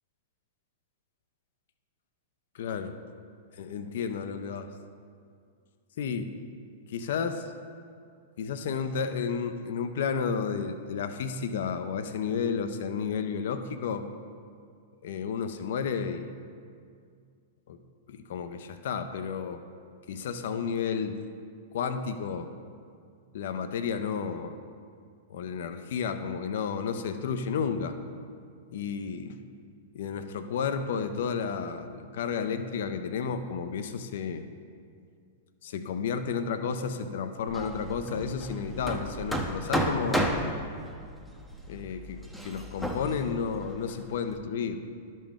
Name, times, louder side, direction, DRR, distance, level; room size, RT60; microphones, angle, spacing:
voice 1, 2.5-2.9 3.5-4.7 6.0-6.3 6.9-7.5 8.4-14.1 15.0-16.3 17.7-17.8 18.1-19.6 20.1-21.2 21.7-22.5 23.3-24.6 25.3-28.0 28.7-29.4 29.9-34.4 35.6-40.3 41.7-44.8, left 6 dB, 60° left, 9 dB, 0.5 m, -32 dB
Hammer, 37.5-44.4, right 1 dB, ahead, 0.8 m, -33 dB
11.5 x 5.3 x 3.6 m, 2.2 s
figure-of-eight pair, 100°, 0 cm